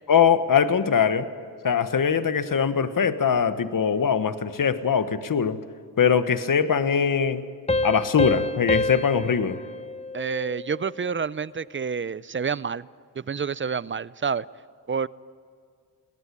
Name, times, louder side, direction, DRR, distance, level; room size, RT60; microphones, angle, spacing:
voice 1, 0.1-1.3 1.6-5.6 6.0-7.4 7.8-9.6, left 7 dB, 50° left, 12 dB, 1.3 m, -22 dB
sound 1, 7.7-11.0, left 2 dB, 15° left, 0.7 m, -28 dB
voice 2, 10.1-12.9 13.2-14.4 14.9-15.1, right 6 dB, 30° right, 20 dB, 0.5 m, -28 dB
21.5 x 17.5 x 9.9 m, 2.1 s
cardioid pair, 65°, 42 cm